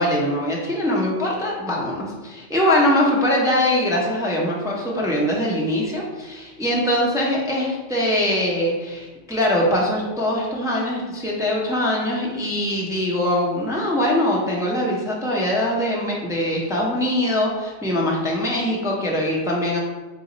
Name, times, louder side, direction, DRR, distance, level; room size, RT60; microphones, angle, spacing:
voice 1, 0.0-19.8, left 1 dB, 5° right, -3 dB, 0.4 m, -22 dB
4.0 x 2.2 x 3.9 m, 1.2 s
omnidirectional pair, 1.1 m